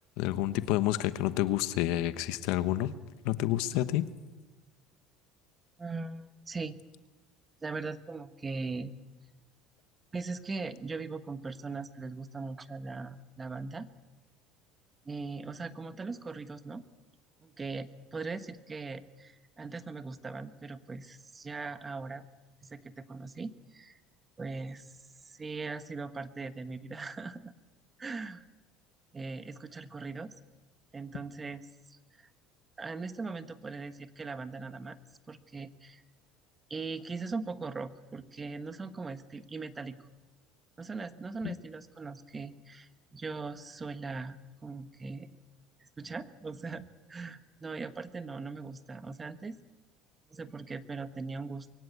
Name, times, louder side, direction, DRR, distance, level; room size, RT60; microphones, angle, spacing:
voice 1, 0.2-2.9 3.2-4.1 41.4-41.5, left 14 dB, 75° left, 13 dB, 1.1 m, -29 dB
voice 2, 5.8-6.8 7.6-8.9 10.1-13.9 15.0-16.8 17.4-22.3 22.6-24.0 24.4-25.0 25.2-27.5 28.0-28.4 29.1-30.3 30.9-32.3 32.8-35.0 35.3-36.0 36.7-40.1 40.8-44.4 44.6-45.3 45.8-49.6 50.3-51.7, right 4 dB, 25° right, 11 dB, 1.3 m, -40 dB
22.5 x 17.0 x 8.2 m, 1.2 s
supercardioid pair, 95°, 0 cm